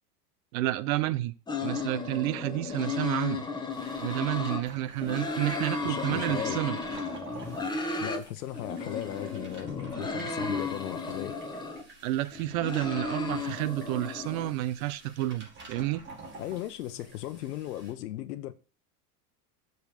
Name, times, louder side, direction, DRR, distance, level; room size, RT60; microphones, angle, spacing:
voice 1, 0.5-1.3 1.6-3.4 4.0-6.8 12.0-16.0, right 16 dB, 60° right, 0.8 m, -30 dB
sound 1, 1.5-4.6 5.0-8.2 8.5-11.8 12.3-14.5, left 4 dB, 10° left, 1.1 m, -34 dB
sound 2, 3.7-17.9, right 2 dB, 25° right, 3.5 m, -50 dB
voice 2, 5.8-6.6 8.0-11.4 16.4-18.5, left 13 dB, 75° left, 0.9 m, -37 dB
7.0 x 4.1 x 6.6 m
hypercardioid pair, 115°, 47 cm